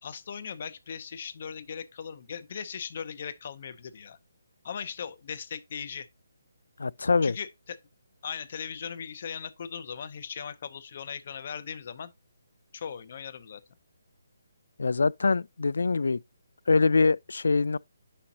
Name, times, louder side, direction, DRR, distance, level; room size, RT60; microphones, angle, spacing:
voice 1, 0.0-4.2 4.6-6.1 7.2-7.8 8.2-12.1 12.7-13.6, left 7 dB, 35° left, 0.6 m, -38 dB
voice 2, 6.8-7.4 14.8-16.2 16.7-17.8, left 4 dB, 75° left, 0.3 m, -24 dB
10.0 x 5.1 x 2.8 m
hypercardioid pair, 180°, 0 cm